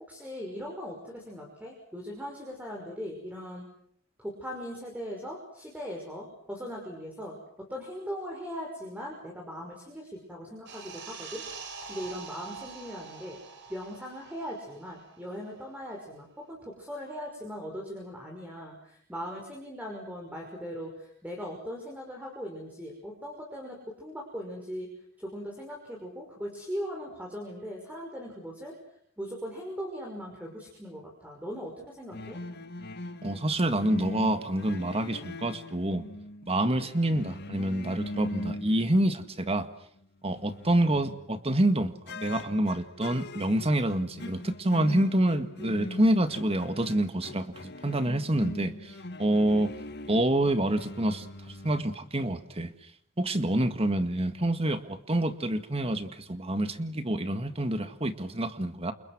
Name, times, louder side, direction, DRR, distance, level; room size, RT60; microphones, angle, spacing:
voice 1, 0.1-3.6 4.2-7.4 7.7-11.4 11.9-13.4 13.7-24.9 25.2-28.7 29.2-32.4, equal, 5° right, -1 dB, 5.9 m, -39 dB
sound 1, 10.7-15.7 16.0-16.2, right 5 dB, 55° right, 4.2 m, -45 dB
sound 2, 32.1-39.6 40.0-41.5 42.1-51.8, left 1 dB, 50° left, 1.8 m, -42 dB
voice 2, 33.2-36.1 36.5-39.7 40.2-49.7 50.1-52.7 53.2-58.9, right 1 dB, 30° right, 9 dB, 1.9 m, -27 dB
29.0 x 28.5 x 6.3 m, 0.67 s
head